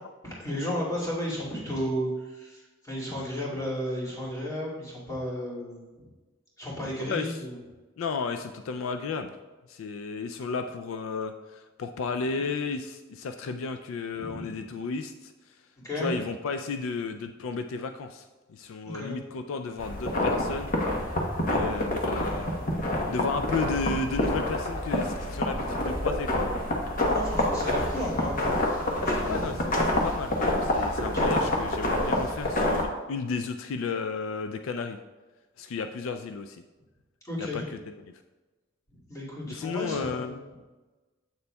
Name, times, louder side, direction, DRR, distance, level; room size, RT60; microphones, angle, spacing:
voice 1, 0.2-6.1 6.6-7.6 14.1-14.6 15.8-16.2 18.8-19.1 23.0-23.2 27.1-29.5 31.0-31.5 37.2-37.7 38.9-40.6, equal, 15° left, -7 dB, 2.1 m, -34 dB
voice 2, 7.0-7.4 8.0-9.4 9.7-15.3 15.9-20.7 21.5-22.5 23.1-26.5 29.2-35.0 35.6-36.6 37.4-37.8 39.5-40.4, left 4 dB, 75° left, 7 dB, 0.3 m, -33 dB
sound 1, 19.8-32.9, left 1 dB, 40° left, 1.0 m, -27 dB
8.1 x 6.8 x 2.2 m, 1.2 s
head